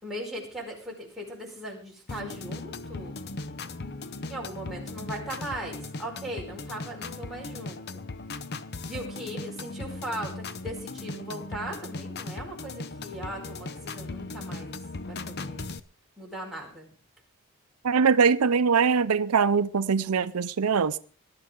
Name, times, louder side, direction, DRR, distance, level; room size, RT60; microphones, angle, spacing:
voice 1, 0.0-3.2 4.3-8.0 8.8-15.6 16.2-16.9, right 1 dB, ahead, 4.9 m, -39 dB
sound 1, 2.1-15.8, left 3 dB, 50° left, 0.7 m, -38 dB
voice 2, 17.8-21.0, right 5 dB, 90° right, 0.6 m, -22 dB
19.5 x 11.5 x 3.8 m
head